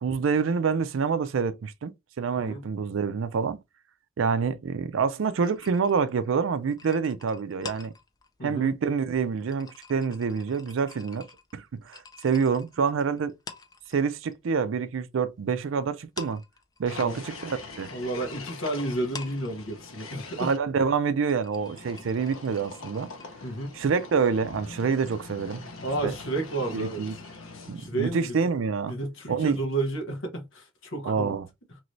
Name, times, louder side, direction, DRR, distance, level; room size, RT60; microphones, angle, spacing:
voice 1, 0.0-3.6 4.2-7.9 8.4-11.3 11.5-13.3 13.9-16.4 16.8-17.9 20.4-23.1 23.7-25.7 26.0-26.1 26.7-27.1 27.7-28.9 29.3-29.6 31.0-31.5, right 5 dB, 70° right, 0.4 m, -27 dB
voice 2, 2.3-2.7 8.4-8.7 17.0-17.2 17.9-20.5 23.4-23.8 25.8-27.0 27.8-28.3 28.9-31.4, right 2 dB, 70° left, 1.1 m, -31 dB
sound 1, 5.4-14.4 14.7-15.7 16.0-23.3, left 4 dB, 20° left, 0.4 m, -47 dB
sound 2, 16.9-20.6 21.6-28.0, left 3 dB, 90° left, 0.8 m, -43 dB
3.1 x 3.0 x 2.6 m
head